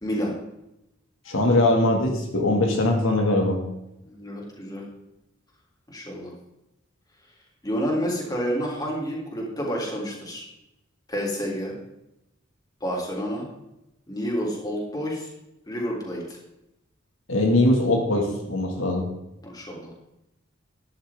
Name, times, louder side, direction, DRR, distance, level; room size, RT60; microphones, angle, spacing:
voice 1, 0.0-0.3 4.0-4.8 5.9-6.3 7.6-10.4 11.1-11.8 12.8-13.5 14.1-15.3 15.7-16.4 19.4-19.9, equal, 20° left, -3 dB, 3.5 m, -29 dB
voice 2, 1.3-3.6 17.3-19.1, left 1 dB, 80° left, 0 dB, 2.3 m, -21 dB
13.0 x 10.5 x 3.7 m, 0.89 s
head